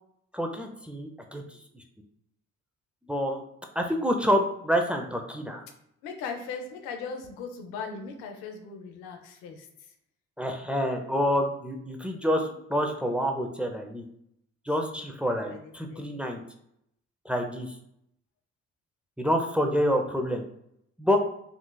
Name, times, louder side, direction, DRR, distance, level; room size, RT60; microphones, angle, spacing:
voice 1, 0.3-1.4 3.1-3.4 3.8-5.6 10.4-14.0 14.7-16.4 17.3-17.7 19.2-20.4 21.0-21.2, equal, 5° right, 3 dB, 0.5 m, -27 dB
voice 2, 6.0-9.7 15.3-16.2, left 5 dB, 85° left, 4 dB, 0.5 m, -39 dB
3.8 x 2.3 x 2.2 m, 0.75 s
hypercardioid pair, 45°, 34 cm